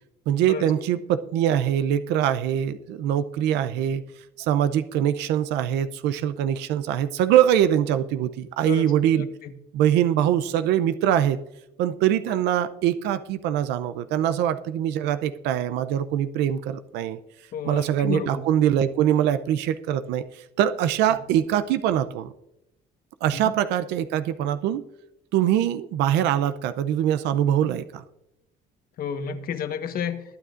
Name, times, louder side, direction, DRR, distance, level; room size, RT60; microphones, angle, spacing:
voice 1, 0.3-4.0 4.4-9.3 9.7-11.4 11.8-17.2 17.7-22.3 23.2-24.8 25.3-28.0, right 10 dB, 85° right, 11 dB, 0.6 m, -23 dB
voice 2, 8.6-9.5 12.3-12.4 17.5-18.4 23.3-23.5 29.0-30.2, left 7 dB, 60° left, 8 dB, 1.3 m, -31 dB
21.5 x 8.5 x 2.5 m, 0.86 s
cardioid pair, 110°, 17 cm